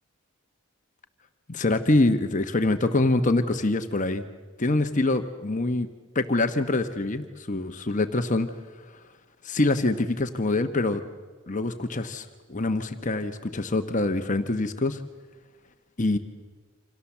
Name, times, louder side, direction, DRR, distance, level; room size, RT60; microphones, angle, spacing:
voice 1, 1.5-4.2 4.6-5.9 6.1-8.5 9.4-11.0 11.5-15.0 16.0-16.2, left 2 dB, 35° left, 7 dB, 1.1 m, -25 dB
28.5 x 26.5 x 7.3 m, 1.5 s
head